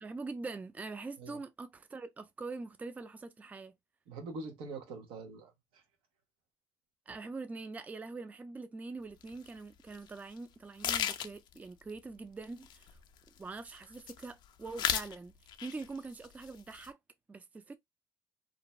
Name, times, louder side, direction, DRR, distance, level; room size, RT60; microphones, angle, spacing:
voice 1, 0.0-3.8 7.1-13.0 13.4-15.3 15.6-17.0 17.3-17.8, right 3 dB, 15° right, 0.3 m, -44 dB
voice 2, 4.1-5.8, right 3 dB, 85° right, 0.8 m, -44 dB
sound 1, 9.2-9.3 9.9-10.1 10.4-10.5 10.8-11.6 12.4-13.4 13.7-14.3 14.6-15.2 15.5-16.0 16.2-16.9, left 9 dB, 60° left, 0.4 m, -34 dB
2.5 x 2.2 x 3.0 m
cardioid pair, 95°, 9 cm